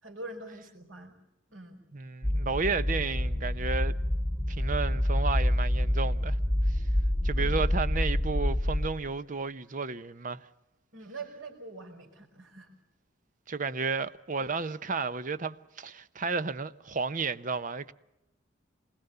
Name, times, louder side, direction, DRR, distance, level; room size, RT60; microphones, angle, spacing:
voice 1, 0.0-1.1 1.5-1.9 7.3-7.7 10.9-12.7, right 2 dB, 80° right, 4.8 m, -44 dB
voice 2, 1.9-3.9 4.5-6.4 6.7-6.8 7.2-10.5 13.5-17.9, right 4 dB, 40° right, 0.7 m, -32 dB
sound 1, 2.2-8.9, left 1 dB, 10° left, 2.0 m, -27 dB
27.0 x 21.0 x 6.8 m
head